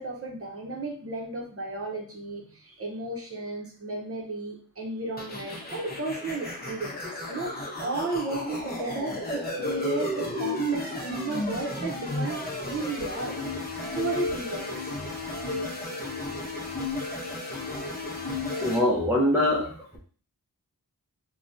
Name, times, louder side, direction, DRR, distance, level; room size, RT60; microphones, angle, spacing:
voice 1, 0.0-13.4 13.9-14.9, right 2 dB, 40° right, -1 dB, 0.8 m, -34 dB
sound 1, 5.2-18.8, left 1 dB, 25° left, 0.8 m, -33 dB
voice 2, 18.6-20.0, left 1 dB, 5° right, -4 dB, 0.7 m, -24 dB
3.4 x 2.3 x 2.6 m, 0.43 s
wide cardioid pair, 85°, 36 cm